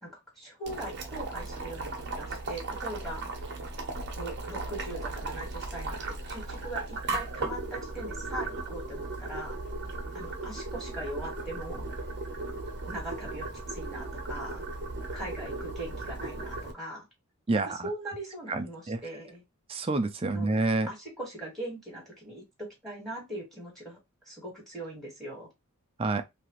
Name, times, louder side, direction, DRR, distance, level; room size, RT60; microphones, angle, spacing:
voice 1, 0.0-3.2 4.1-6.0 6.3-9.6 10.1-11.9 12.9-14.7 15.1-17.0 17.6-19.4 20.3-20.5 20.9-24.0 24.2-25.5, right 1 dB, ahead, 1.5 m, -40 dB
Boiling, 0.6-16.7, right 3 dB, 50° right, 0.8 m, -36 dB
voice 2, 17.5-17.8 18.5-19.0 19.7-20.9 26.0-26.2, right 3 dB, 25° right, 0.4 m, -28 dB
2.9 x 2.5 x 3.0 m
head